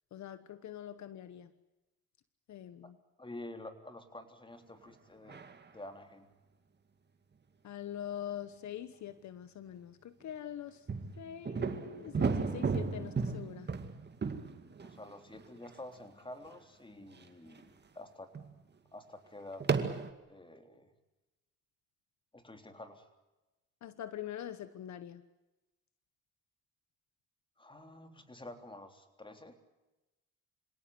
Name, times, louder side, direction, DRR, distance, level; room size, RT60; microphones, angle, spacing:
voice 1, 0.1-1.5 2.5-3.0 7.6-10.9 11.2-13.7 23.8-25.2, left 10 dB, 65° left, 13 dB, 1.2 m, -44 dB
voice 2, 3.2-6.3 14.8-18.3 18.9-19.6 20.3-20.9 22.3-23.0 27.6-29.6, left 1 dB, 15° left, 6 dB, 3.6 m, -49 dB
sound 1, 5.3-5.7 10.9-15.7 16.5-16.6 17.2-17.6 18.3-18.5 19.6-20.1, right 5 dB, 35° right, 2.2 m, -34 dB
26.5 x 17.5 x 9.4 m, 1.1 s
cardioid pair, 90°, 30 cm